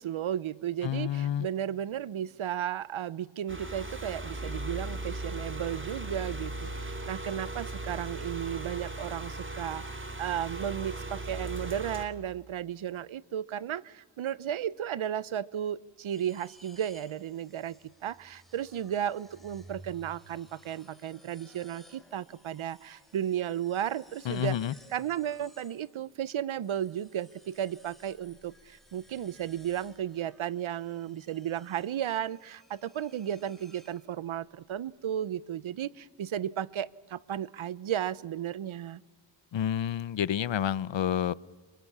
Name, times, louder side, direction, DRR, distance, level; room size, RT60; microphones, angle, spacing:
voice 1, 0.0-17.8 18.0-24.6 24.9-39.0, right 10 dB, 85° right, 21 dB, 0.8 m, -34 dB
voice 2, 0.8-1.5 24.3-24.7 39.5-41.3, left 10 dB, 70° left, 21 dB, 0.8 m, -29 dB
sound 1, 3.5-12.1, right 2 dB, 25° right, 3.3 m, -38 dB
sound 2, 16.1-26.2 26.6-34.5, right 1 dB, ahead, 4.3 m, -58 dB
29.0 x 26.0 x 7.3 m, 1.3 s
cardioid pair, 60°, 47 cm